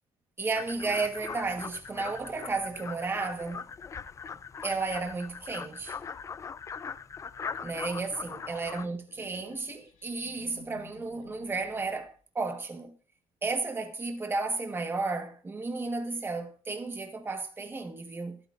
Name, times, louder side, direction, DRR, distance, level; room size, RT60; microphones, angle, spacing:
voice 1, 0.4-3.7 4.6-6.0 7.6-12.9 13.4-18.4, right 3 dB, 20° right, 1.3 m, -33 dB
sound 1, 0.5-8.9, left 6 dB, 25° left, 0.4 m, -41 dB
sound 2, 9.1-12.2, left 7 dB, 80° left, 4.5 m, -55 dB
24.0 x 8.3 x 2.5 m
cardioid pair, 150°, 13 cm